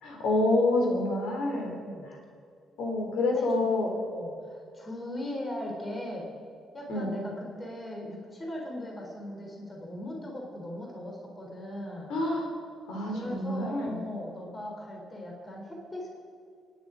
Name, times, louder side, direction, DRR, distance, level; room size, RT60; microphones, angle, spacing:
voice 1, 0.0-1.8 2.8-3.9 6.9-7.1 12.1-12.5 12.9-14.0, left 2 dB, 80° left, 1 dB, 3.5 m, -27 dB
voice 2, 1.8-2.1 3.3-6.3 6.7-12.1 13.1-16.1, left 1 dB, 25° left, 0 dB, 3.7 m, -39 dB
26.0 x 10.5 x 5.0 m, 2.3 s
cardioid pair, 90°, 0 cm